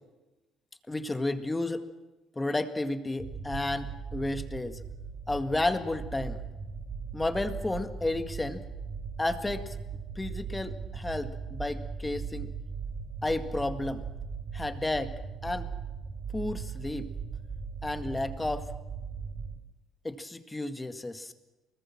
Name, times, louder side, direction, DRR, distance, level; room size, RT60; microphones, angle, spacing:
voice 1, 0.9-1.9 2.4-4.8 5.3-6.4 7.1-8.6 9.2-9.7 10.2-12.5 13.2-14.0 14.5-15.1 15.4-15.7 16.3-17.1 17.8-18.7 20.0-21.3, left 2 dB, 15° left, 9 dB, 1.9 m, -32 dB
sound 1, 3.2-19.6, right 5 dB, 40° right, 5.7 m, -39 dB
24.0 x 21.0 x 7.4 m, 1.1 s
cardioid pair, 100°, 0 cm